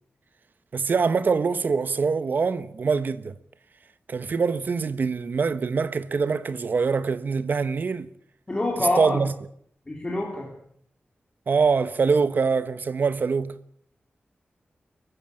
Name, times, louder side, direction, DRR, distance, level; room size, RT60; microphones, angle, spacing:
voice 1, 0.7-3.3 4.1-8.1 9.0-9.3 11.5-13.6, right 5 dB, 55° right, 1.1 m, -24 dB
voice 2, 8.5-9.2 9.9-10.5, left 2 dB, 20° left, 3.9 m, -26 dB
24.5 x 15.0 x 8.9 m
wide cardioid pair, 175°, 4 cm